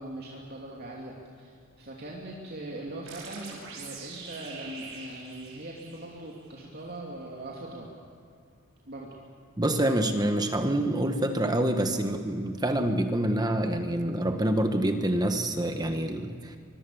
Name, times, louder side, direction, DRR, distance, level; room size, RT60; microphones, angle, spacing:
voice 1, 0.0-7.9 8.9-9.1, right 1 dB, 50° right, -3 dB, 3.0 m, -41 dB
sound 1, 3.1-6.5, right 4 dB, 75° right, 6.1 m, -44 dB
voice 2, 9.6-16.6, right 1 dB, 20° right, 6 dB, 1.2 m, -26 dB
25.0 x 22.5 x 7.0 m, 2.5 s
head